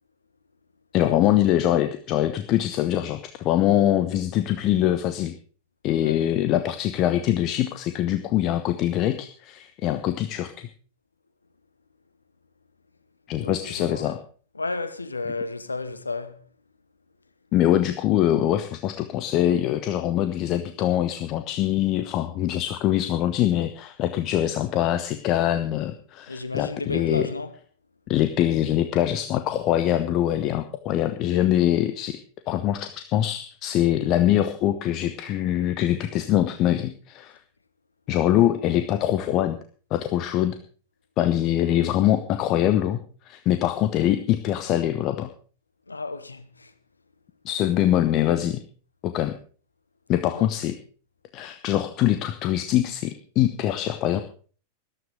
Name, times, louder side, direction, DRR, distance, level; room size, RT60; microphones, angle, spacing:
voice 1, 0.9-5.4 5.8-10.7 13.3-14.2 17.5-27.3 28.1-32.2 32.5-37.4 38.1-39.6 39.9-40.6 41.2-45.3 47.4-48.6 49.0-49.3 50.1-50.8 51.3-54.2, left 12 dB, 40° left, 1.1 m, -23 dB
voice 2, 13.4-14.2 14.5-16.5 26.3-27.5 45.9-46.7 50.3-50.5, left 3 dB, 80° left, 1.2 m, -33 dB
14.0 x 13.0 x 5.0 m
figure-of-eight pair, 90°, 0 cm